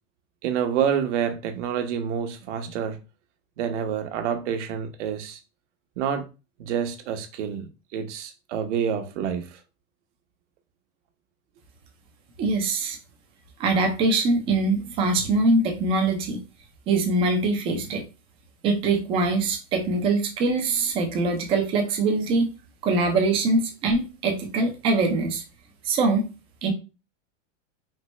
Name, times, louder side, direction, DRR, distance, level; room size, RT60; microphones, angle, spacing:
voice 1, 0.4-3.0 3.6-5.4 6.0-6.2 6.6-9.5, right 8 dB, 65° right, 0.9 m, -28 dB
voice 2, 12.4-13.0 13.6-16.4 16.9-18.0 18.6-22.5 22.8-25.4 25.9-26.3 26.6-26.7, right 3 dB, 15° right, 0.3 m, -23 dB
4.4 x 2.1 x 3.0 m
supercardioid pair, 145°, 39 cm